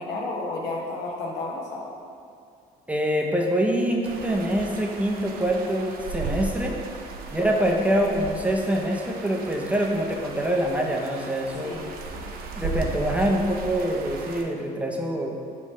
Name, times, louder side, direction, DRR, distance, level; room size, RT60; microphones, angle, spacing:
voice 1, 0.0-1.9 7.4-7.5 11.6-12.4, left 2 dB, 90° left, -2 dB, 1.1 m, -32 dB
voice 2, 2.9-6.8 7.3-11.8 12.6-15.4, right 1 dB, 10° right, 0 dB, 0.6 m, -25 dB
sound 1, 4.0-14.4, right 3 dB, 60° right, 0.6 m, -36 dB
5.6 x 3.2 x 5.4 m, 2.3 s
cardioid pair, 110°, 17 cm